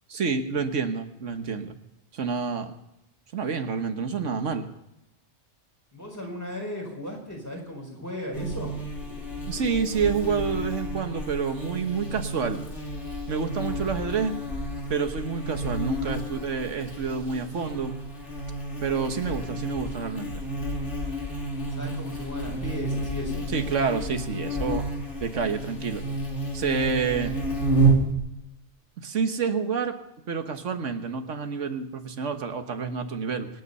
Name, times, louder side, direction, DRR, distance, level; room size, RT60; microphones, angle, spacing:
voice 1, 0.1-1.8 2.1-2.7 3.3-4.7 9.5-12.6 13.3-14.3 14.9-18.0 18.8-20.4 23.5-24.9 25.2-26.0 26.5-27.3 29.0-30.0 30.3-33.5, right 5 dB, 90° right, 7 dB, 1.6 m, -28 dB
voice 2, 5.9-8.7 21.7-23.5, left 1 dB, 15° left, 0 dB, 4.6 m, -36 dB
Buzz, 8.3-28.1, right 2 dB, 70° left, 3.2 m, -30 dB
26.0 x 9.4 x 5.5 m, 0.87 s
omnidirectional pair, 1.2 m